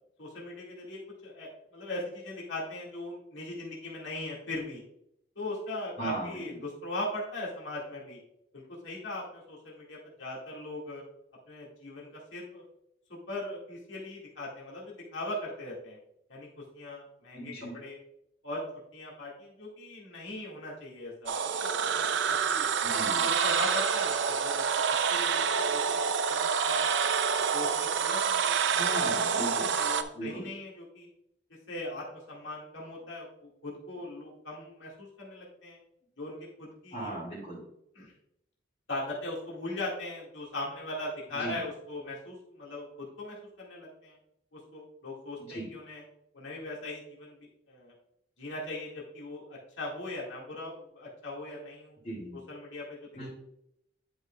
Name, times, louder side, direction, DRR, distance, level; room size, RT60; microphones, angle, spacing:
voice 1, 0.2-4.8 5.4-8.2 8.5-11.0 11.5-12.6 13.1-16.0 16.3-16.5 16.7-18.0 18.4-18.6 18.9-21.3 21.6-22.7 23.2-26.0 26.3-26.9 27.5-28.8 29.6-31.1 31.7-35.8 36.2-37.2 38.0-38.1 38.9-44.2 44.5-46.0 46.3-47.9 48.4-52.0 52.5-53.3, left 1 dB, 65° left, -3 dB, 1.9 m, -39 dB
voice 2, 6.0-6.4 17.3-17.7 22.8-23.3 28.8-29.7 30.1-30.5 36.9-37.6 41.3-41.6 45.5-45.7 52.0-52.4 53.1-53.3, right 1 dB, 30° left, -6 dB, 2.0 m, -37 dB
sound 1, 21.3-30.0, right 6 dB, 60° right, 0.4 m, -27 dB
10.5 x 5.4 x 2.3 m, 0.78 s
head